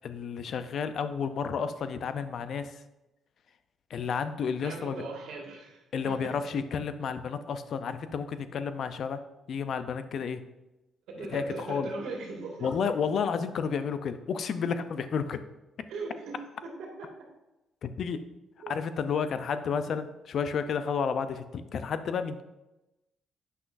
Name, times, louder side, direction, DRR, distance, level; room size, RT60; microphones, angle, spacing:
voice 1, 0.0-2.8 3.9-5.0 5.9-9.2 9.5-10.4 11.2-11.9 12.6-15.4 17.8-18.2 18.7-22.4, left 6 dB, 60° left, 11 dB, 0.5 m, -31 dB
voice 2, 4.6-6.3 11.1-12.9 15.9-17.1 18.6-18.7, right 3 dB, 85° right, -1 dB, 1.9 m, -40 dB
8.2 x 6.0 x 2.6 m, 0.98 s
cardioid pair, 90°, 0 cm